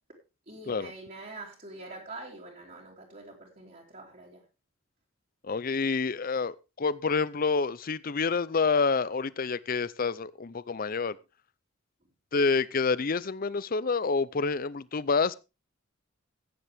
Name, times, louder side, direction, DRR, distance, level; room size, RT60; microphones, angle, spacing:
voice 1, 0.5-4.4, right 2 dB, 40° right, 3.2 m, -45 dB
voice 2, 5.4-11.2 12.3-15.4, left 4 dB, 45° left, 0.6 m, -28 dB
15.0 x 9.6 x 3.5 m
head